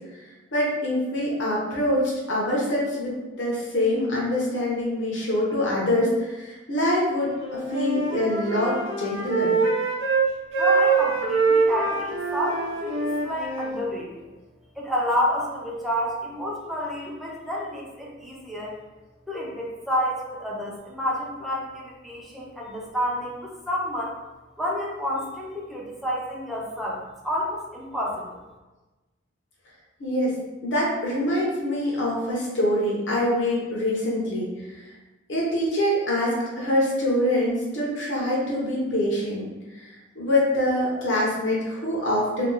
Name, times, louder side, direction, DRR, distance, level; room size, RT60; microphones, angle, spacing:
voice 1, 0.5-3.1 3.4-7.3 7.7-9.5 30.0-30.3 30.6-34.5 35.3-39.4 40.1-42.5, left 1 dB, 70° left, -5 dB, 0.8 m, -24 dB
Wind instrument woodwind instrument, 7.4-10.3 10.5-13.8, right 4 dB, 85° right, 0.7 m, -24 dB
voice 2, 10.6-14.3 14.8-18.8 19.3-24.1 24.6-28.4, equal, ahead, -5 dB, 0.5 m, -29 dB
2.7 x 2.2 x 3.7 m, 1.1 s
head